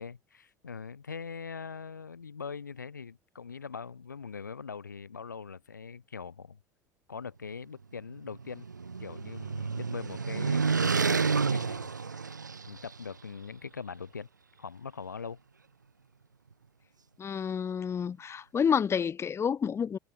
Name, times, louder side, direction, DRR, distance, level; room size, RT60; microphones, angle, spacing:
voice 1, 0.0-6.6 7.1-8.7 9.0-12.2 12.7-14.3 14.6-15.4, left 5 dB, 85° left, 5.5 m, -42 dB
sound 1, 8.2-13.0, right 5 dB, 90° right, 0.8 m, -30 dB
voice 2, 17.2-20.0, left 7 dB, 25° left, 0.9 m, -29 dB
figure-of-eight pair, 70°, 10 cm